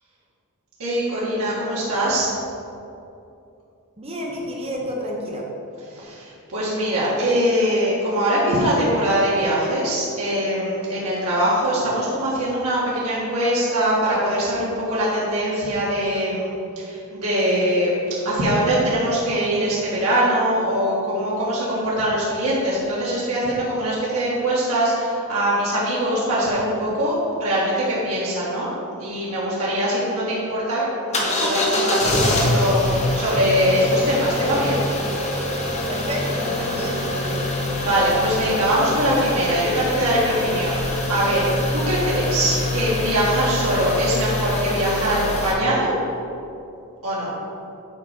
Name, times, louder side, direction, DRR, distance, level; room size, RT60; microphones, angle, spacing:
voice 1, 0.8-2.3 5.9-17.9 18.2-28.7 29.0-34.8 37.8-40.8 41.1-45.9 47.0-47.3, right 1 dB, 80° right, -8 dB, 1.5 m, -22 dB
voice 2, 4.0-5.5 35.9-37.5, equal, 25° right, -1 dB, 0.9 m, -30 dB
sound 1, 31.1-45.5, left 1 dB, 30° left, 1.1 m, -24 dB
8.2 x 4.2 x 5.1 m, 2.7 s
head